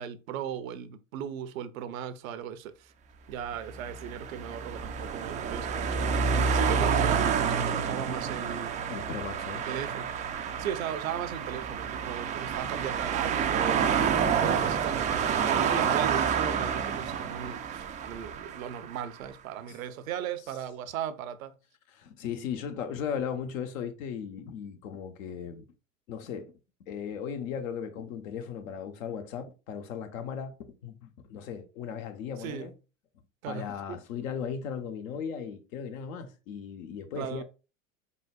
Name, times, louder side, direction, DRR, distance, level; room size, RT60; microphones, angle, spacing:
voice 1, 0.0-2.9 3.3-8.8 9.7-21.6 32.4-32.7 33.4-34.0 37.2-37.4, right 9 dB, 75° right, 0.7 m, -37 dB
sound 1, 3.6-19.0, right 6 dB, 20° right, 0.3 m, -29 dB
voice 2, 8.9-9.6 19.7-19.8 21.9-25.6 26.1-26.5 26.8-30.6 30.8-32.7 33.5-37.4, left 7 dB, 70° left, 1.0 m, -37 dB
4.3 x 4.0 x 2.4 m
hypercardioid pair, 100°, 41 cm